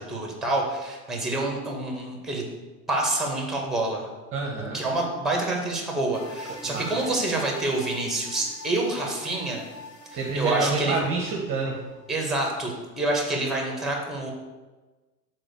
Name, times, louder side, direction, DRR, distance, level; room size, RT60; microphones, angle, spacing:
voice 1, 0.0-2.4 2.9-4.1 4.7-9.6 10.1-11.0 12.1-14.3, right 2 dB, ahead, 0 dB, 2.0 m, -27 dB
voice 2, 4.3-4.8 6.6-7.2 10.1-11.8, right 3 dB, 25° right, 0 dB, 1.2 m, -28 dB
sound 1, 6.1-12.5 12.7-12.9, left 2 dB, 85° left, 1.0 m, -43 dB
7.6 x 4.3 x 6.8 m, 1.2 s
figure-of-eight pair, 90°, 47 cm